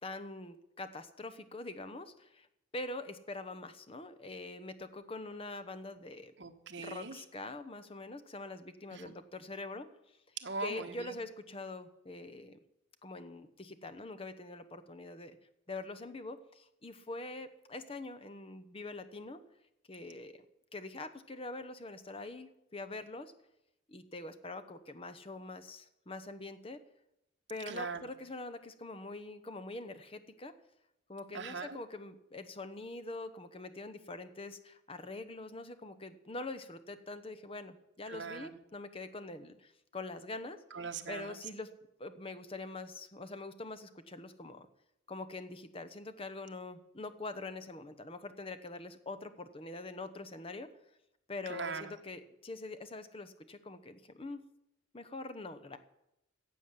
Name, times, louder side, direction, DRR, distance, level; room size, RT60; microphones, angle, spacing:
voice 1, 0.0-2.5 2.7-6.3 6.8-10.2 10.6-12.6 13.0-15.4 15.7-19.4 19.9-20.4 20.7-23.3 23.9-26.8 27.5-30.5 31.1-40.6 41.1-41.7 42.0-44.7 45.1-50.7 51.3-54.5 54.9-55.8, left 2 dB, 30° left, 9 dB, 1.0 m, -44 dB
voice 2, 6.4-7.2 8.9-9.1 10.4-11.2 27.7-28.1 31.3-31.8 38.1-38.5 40.7-41.4 51.5-51.9, right 4 dB, 65° right, 4 dB, 1.4 m, -41 dB
15.0 x 8.3 x 7.5 m, 0.85 s
head